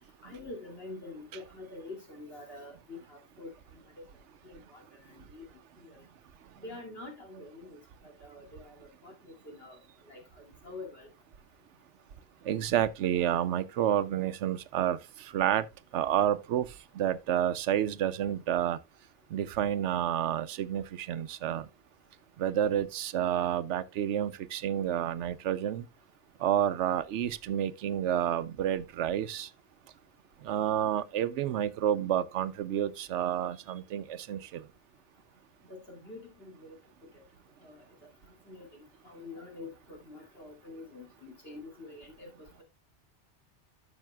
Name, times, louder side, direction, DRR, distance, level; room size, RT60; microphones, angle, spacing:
voice 1, 0.2-3.5 4.0-4.1 4.4-5.5 5.8-6.0 6.6-9.8 10.1-11.1 35.6-36.8 37.1-37.2 37.6-37.8 38.2-42.5, left 3 dB, 60° left, 2.9 m, -46 dB
voice 2, 12.4-15.7 15.9-16.7 16.9-18.8 19.3-21.7 22.4-25.9 26.4-29.5 30.4-34.7, right 10 dB, 85° right, 0.9 m, -29 dB
12.0 x 6.3 x 2.2 m
omnidirectional pair, 1.2 m